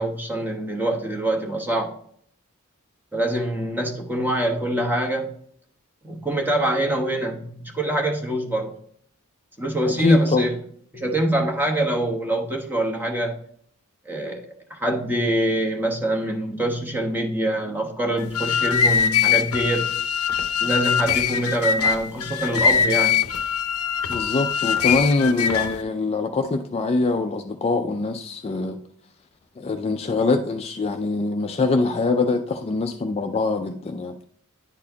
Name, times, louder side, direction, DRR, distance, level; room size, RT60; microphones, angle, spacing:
voice 1, 0.0-1.9 3.1-5.3 6.0-8.7 9.6-10.5 10.9-13.4 14.0-14.4 14.7-19.9 20.6-23.2, right 1 dB, 10° right, 1.0 m, -24 dB
voice 2, 10.0-10.5 24.1-28.8 29.6-34.1, left 3 dB, 25° left, 0.3 m, -23 dB
sound 1, 18.2-25.8, left 7 dB, 75° left, 0.6 m, -22 dB
10.5 x 4.2 x 2.8 m
head